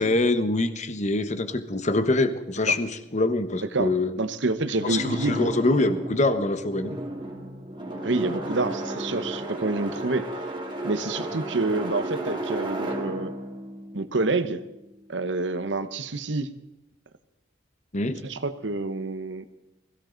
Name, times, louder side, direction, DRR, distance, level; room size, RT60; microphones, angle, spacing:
voice 1, 0.0-4.1 4.8-6.9 17.9-18.2, left 2 dB, 40° left, 11 dB, 1.2 m, -24 dB
voice 2, 4.2-5.5 8.0-10.3 10.8-13.3 13.9-14.6 15.1-16.5 18.2-19.4, right 3 dB, 70° right, 12 dB, 1.1 m, -28 dB
sound 1, 4.9-14.9, right 1 dB, 25° right, 2.5 m, -33 dB
21.0 x 16.5 x 4.0 m, 0.96 s
head